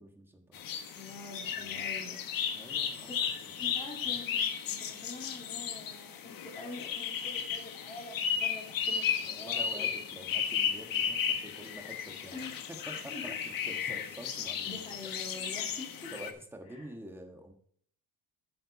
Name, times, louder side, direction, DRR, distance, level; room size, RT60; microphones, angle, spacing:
voice 1, 0.0-0.8 1.6-1.8 2.5-3.4 3.6-3.8 9.2-12.4 12.9-14.8 16.1-17.5, right 1 dB, 5° right, 3 dB, 1.4 m, -48 dB
sound 1, 0.5-16.3, left 7 dB, 50° left, 1.3 m, -34 dB
voice 2, 0.9-2.2 2.7-9.9 12.3-12.6 13.1-13.2 14.6-16.1 16.7-16.9, left 2 dB, 15° left, -3 dB, 2.6 m, -46 dB
8.5 x 7.8 x 4.9 m, 0.62 s
cardioid pair, 155°, 44 cm